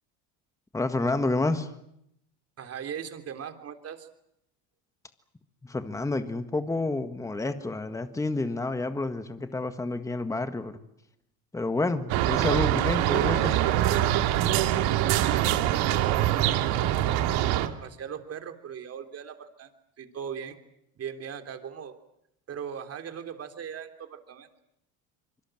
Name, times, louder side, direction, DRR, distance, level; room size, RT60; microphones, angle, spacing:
voice 1, 0.7-1.7 5.6-10.8 11.5-13.6, left 2 dB, 10° left, 9 dB, 1.7 m, -29 dB
voice 2, 2.6-4.1 14.9-19.7 20.0-20.6 20.9-21.9 22.5-24.5, right 8 dB, 35° right, 7 dB, 3.4 m, -39 dB
sound 1, 12.1-17.7, right 12 dB, 65° right, 2.4 m, -24 dB
26.0 x 24.0 x 7.8 m, 0.76 s
cardioid pair, 130°, 41 cm